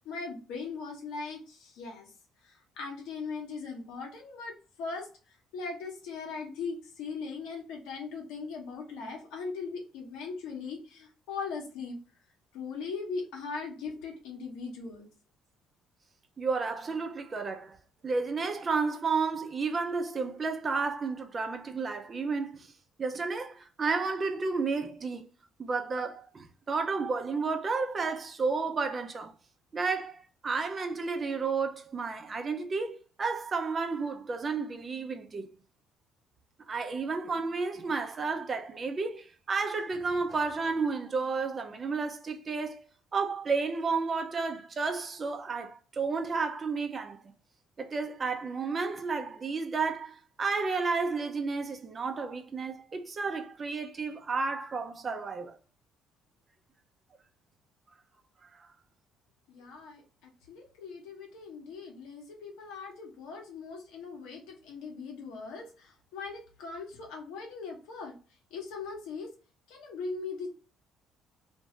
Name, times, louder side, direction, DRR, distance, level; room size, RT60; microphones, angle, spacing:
voice 1, 0.0-2.1 2.4-4.5 4.8-5.1 5.5-12.0 12.5-15.1 59.5-68.1 68.5-69.3 69.7-70.5, left 4 dB, 80° left, 1.1 m, -39 dB
voice 2, 16.4-17.8 18.0-22.7 23.0-25.2 25.6-29.3 29.7-35.5 36.7-42.8 43.1-47.2 47.8-55.6, right 4 dB, 40° right, 0.5 m, -32 dB
2.6 x 2.3 x 2.9 m
supercardioid pair, 75°, 0 cm